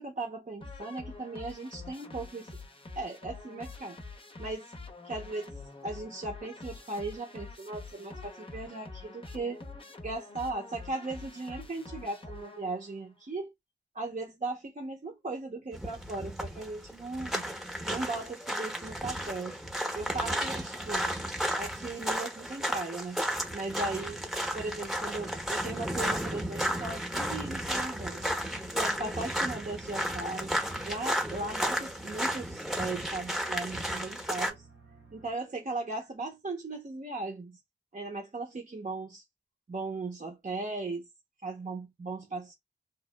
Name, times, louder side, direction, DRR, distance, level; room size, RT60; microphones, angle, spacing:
voice 1, 0.0-2.5 3.0-4.0 4.4-4.7 5.0-5.5 5.8-9.6 10.0-13.5 13.9-17.5 17.8-19.6 19.9-21.1 21.5-23.2 23.5-24.2 24.5-28.4 28.7-30.5 30.9-34.6 35.1-37.6 37.9-39.2 39.7-41.1 41.4-42.5, right 3 dB, 45° right, 0.8 m, -37 dB
sound 1, 0.6-13.0, left 3 dB, 25° left, 0.7 m, -46 dB
sound 2, 15.7-34.5, equal, ahead, 0.8 m, -33 dB
sound 3, 28.0-35.3, right 3 dB, 75° right, 0.9 m, -56 dB
2.8 x 2.0 x 2.2 m
cardioid pair, 45°, 20 cm